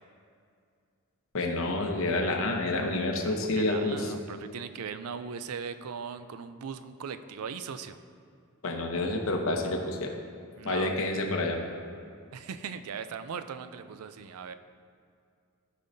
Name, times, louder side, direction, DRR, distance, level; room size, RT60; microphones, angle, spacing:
voice 1, 1.3-4.1 8.6-10.1 10.6-11.6, left 2 dB, 65° left, 3 dB, 0.9 m, -28 dB
voice 2, 3.3-8.0 10.6-10.9 12.3-14.5, right 6 dB, 80° right, 11 dB, 0.4 m, -39 dB
14.0 x 5.5 x 2.7 m, 2.3 s
head